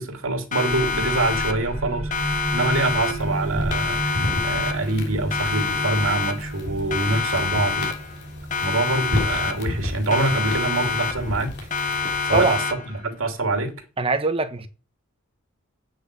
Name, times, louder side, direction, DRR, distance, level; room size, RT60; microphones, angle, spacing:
voice 1, 0.0-7.9 8.6-11.5 12.2-13.7, right 2 dB, 70° right, 2.9 m, -25 dB
Siren, 0.5-1.8 2.1-3.4 3.7-5.0 5.3-6.6 6.9-8.2 8.5-9.8 10.1-11.4 11.7-13.0, left 4 dB, 40° left, 1.3 m, -27 dB
sound 1, 0.7-12.1, right 1 dB, 85° right, 2.2 m, -33 dB
sound 2, 3.0-12.6, left 1 dB, 55° left, 3.1 m, -33 dB
voice 2, 14.0-14.7, right 3 dB, 25° right, 1.2 m, -22 dB
8.7 x 6.5 x 8.4 m
head